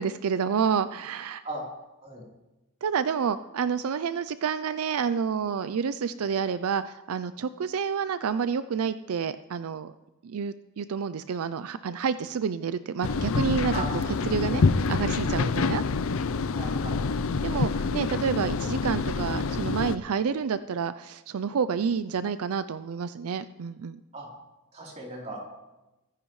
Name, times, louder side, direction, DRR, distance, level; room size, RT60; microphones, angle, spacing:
voice 1, 0.0-1.4 2.8-9.9 10.2-13.7 14.3-15.8 17.4-24.0, right 6 dB, 80° right, 13 dB, 0.4 m, -29 dB
sound 1, 13.0-20.0, left 4 dB, 70° left, 0.5 m, -27 dB
voice 2, 16.5-17.0 24.1-24.3 24.7-25.4, right 2 dB, 30° right, -3 dB, 3.7 m, -37 dB
23.5 x 10.5 x 3.2 m, 1.0 s
head